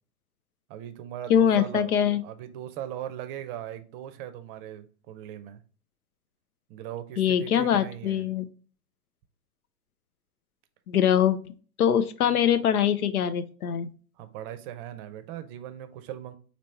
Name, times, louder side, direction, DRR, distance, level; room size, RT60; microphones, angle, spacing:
voice 1, 0.7-5.6 6.7-8.3 14.2-16.3, right 11 dB, 35° right, 11 dB, 0.6 m, -39 dB
voice 2, 1.3-2.2 7.2-8.5 10.9-11.4 11.8-13.9, left 9 dB, 70° left, 10 dB, 0.6 m, -23 dB
4.1 x 2.9 x 4.3 m, 0.40 s
figure-of-eight pair, 95°, 46 cm